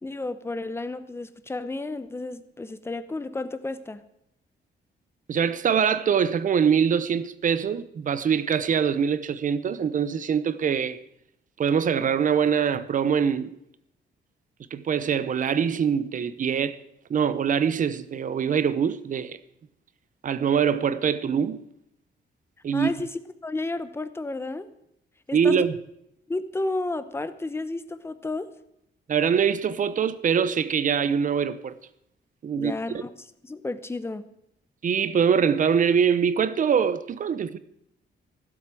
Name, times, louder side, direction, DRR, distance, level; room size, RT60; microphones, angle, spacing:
voice 1, 0.0-4.0 22.7-24.7 25.3-25.6 26.3-28.5 32.5-33.1 33.4-34.3, left 2 dB, 15° left, 0.9 m, -32 dB
voice 2, 5.3-11.0 11.6-13.6 14.7-16.8 17.1-19.4 20.2-21.6 22.6-22.9 25.3-25.7 29.1-31.7 32.4-33.0 34.8-37.6, right 7 dB, 45° right, 0.8 m, -23 dB
16.0 x 8.0 x 7.6 m
wide cardioid pair, 165°, 19 cm